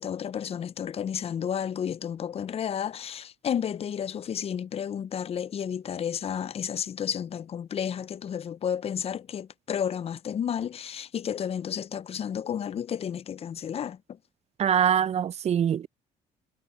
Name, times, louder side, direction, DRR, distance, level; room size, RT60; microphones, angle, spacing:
voice 1, 0.0-14.2, left 8 dB, 35° left, 0.5 m, -32 dB
voice 2, 14.6-15.9, right 9 dB, 40° right, 0.5 m, -23 dB
cardioid pair, 110°, 17 cm